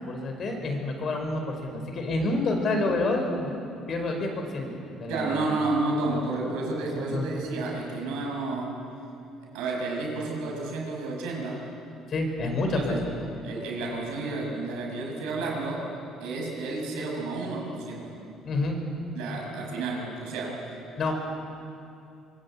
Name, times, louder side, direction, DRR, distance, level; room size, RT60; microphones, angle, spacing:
voice 1, 0.0-3.5 3.9-4.7 5.0-5.6 7.0-7.3 12.1-13.0 18.4-18.8 21.0-21.1, left 2 dB, 45° left, 3 dB, 5.2 m, -28 dB
voice 2, 5.1-8.8 9.5-11.7 12.7-13.0 13.4-15.9 16.2-18.2 19.1-20.7, right 3 dB, 90° right, 0 dB, 7.1 m, -31 dB
25.0 x 22.0 x 8.7 m, 2.6 s
cardioid pair, 130°, 0 cm